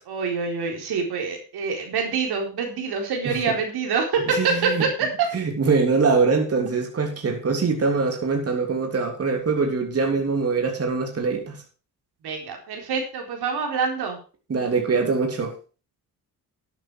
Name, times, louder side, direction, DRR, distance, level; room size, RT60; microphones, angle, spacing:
voice 1, 0.1-5.3 12.2-14.2, right 5 dB, 80° right, 2 dB, 4.3 m, -26 dB
voice 2, 4.3-4.9 5.3-11.6 14.5-15.5, right 4 dB, 40° right, 2 dB, 3.2 m, -23 dB
12.0 x 9.3 x 4.8 m, 0.35 s
cardioid pair, 105°, 38 cm